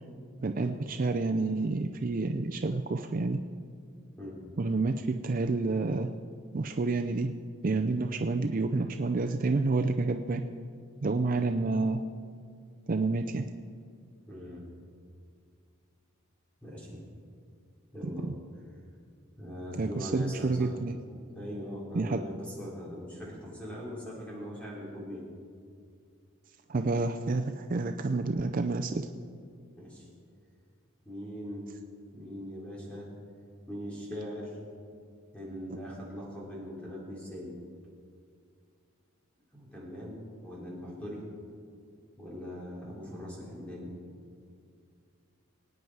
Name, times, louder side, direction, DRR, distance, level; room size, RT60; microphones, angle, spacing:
voice 1, 0.4-3.4 4.6-6.1 6.5-7.3 7.6-10.4 11.0-12.0 12.9-13.4 19.8-21.0 22.0-22.2 26.7-29.1, right 3 dB, 40° right, 6 dB, 0.4 m, -29 dB
voice 2, 14.3-14.6 16.6-17.0 17.9-18.8 19.4-20.7 21.3-25.3 29.8-30.1 31.0-31.7 32.1-33.1 33.7-34.6 35.3-37.6 39.5-41.3 42.2-43.9, equal, 5° left, -5 dB, 3.6 m, -41 dB
23.0 x 9.3 x 4.7 m, 2.2 s
head